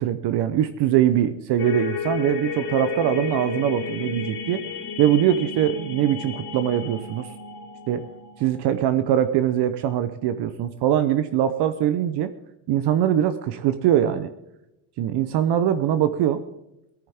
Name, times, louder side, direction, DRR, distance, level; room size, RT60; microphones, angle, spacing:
voice 1, 0.0-4.6 5.0-7.3 7.9-8.1 8.4-12.3 12.7-14.3 15.0-16.4, right 10 dB, 60° right, 11 dB, 0.9 m, -22 dB
sound 1, 1.6-8.9, left 7 dB, 55° left, 4.2 m, -33 dB
18.0 x 14.0 x 3.6 m, 0.90 s
cardioid pair, 130°, 46 cm